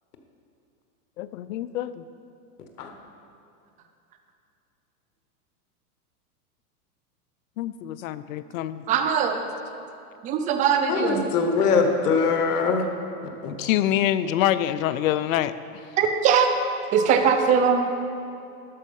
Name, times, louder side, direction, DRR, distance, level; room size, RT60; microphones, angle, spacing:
voice 1, 1.2-2.0 7.6-8.8 13.6-15.8, left 12 dB, 60° left, 14 dB, 0.5 m, -26 dB
voice 2, 8.9-9.4 10.2-11.2 16.0-16.5 16.9-17.9, right 7 dB, 20° right, 6 dB, 0.4 m, -21 dB
voice 3, 10.9-12.9 13.4-13.5, left 5 dB, 80° left, 4 dB, 1.4 m, -22 dB
12.0 x 5.3 x 5.4 m, 2.6 s
hypercardioid pair, 135°, 45 cm